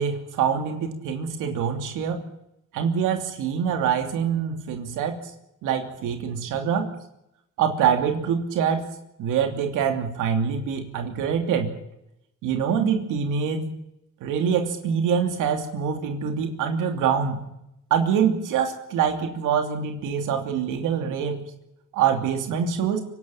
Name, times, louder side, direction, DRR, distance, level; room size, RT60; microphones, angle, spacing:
voice 1, 0.0-2.2 2.7-5.2 5.6-6.9 7.6-8.9 9.2-11.7 12.4-13.7 14.2-17.4 17.9-21.4 21.9-23.0, right 7 dB, 90° right, 4 dB, 2.9 m, -25 dB
24.5 x 12.0 x 9.0 m, 0.82 s
cardioid pair, 90°, 30 cm